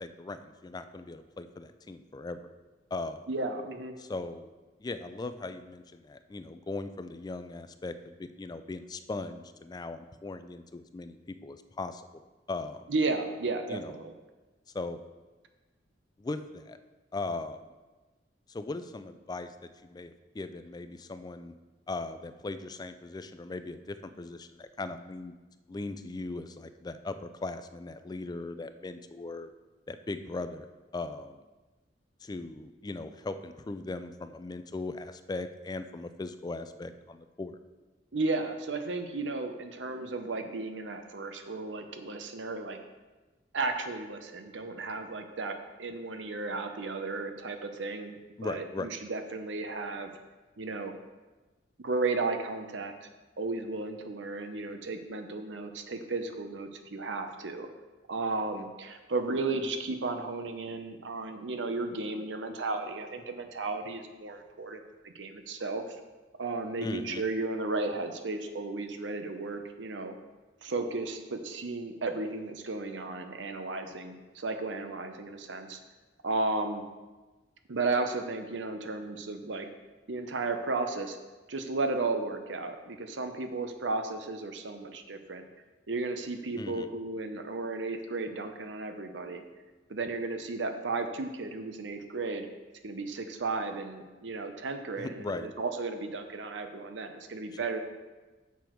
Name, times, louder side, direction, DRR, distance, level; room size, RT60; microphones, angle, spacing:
voice 1, 0.0-2.5 2.9-3.3 4.0-4.5 4.8-12.1 12.5-12.9 13.7-14.0 14.7-15.0 16.2-16.8 17.1-17.6 18.5-19.5 19.8-21.6 21.9-25.3 25.7-29.5 29.9-30.7 30.9-31.4 32.2-37.6 48.4-48.9 66.8-67.2 86.6-86.9 95.0-95.5 97.5-97.6, left 3 dB, 20° left, 10 dB, 0.3 m, -39 dB
voice 2, 3.3-3.9 12.9-14.1 38.1-42.8 43.5-50.1 50.6-50.9 51.8-53.1 53.4-57.7 58.1-66.0 66.4-70.2 70.6-75.8 76.2-76.8 77.7-79.7 80.1-81.2 81.5-85.4 85.9-89.4 89.9-92.5 92.8-97.8, right 3 dB, 90° right, 7 dB, 0.8 m, -34 dB
7.0 x 6.1 x 4.5 m, 1.2 s
head